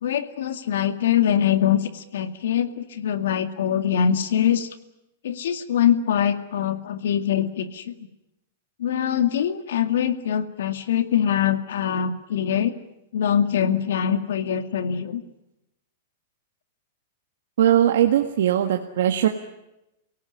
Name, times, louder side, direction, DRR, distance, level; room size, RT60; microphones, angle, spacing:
voice 1, 0.0-4.7 5.2-7.9 8.8-12.7 13.1-15.2, left 9 dB, 70° left, 9 dB, 2.1 m, -23 dB
voice 2, 17.6-19.3, right 11 dB, 65° right, 4 dB, 1.7 m, -19 dB
28.5 x 18.0 x 10.0 m, 0.90 s
supercardioid pair, 180°, 0 cm